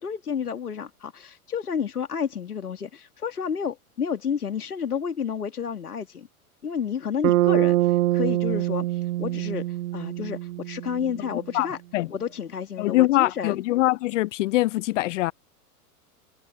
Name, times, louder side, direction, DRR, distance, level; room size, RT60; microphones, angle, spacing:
voice 1, 0.0-6.3 6.6-11.8 12.1-13.6, left 7 dB, 80° left, 1.9 m, -31 dB
Bass guitar, 7.2-11.3, right 15 dB, 65° right, 0.5 m, -24 dB
voice 2, 12.8-15.3, left 17 dB, 55° left, 1.0 m, -23 dB
figure-of-eight pair, 90°, 45 cm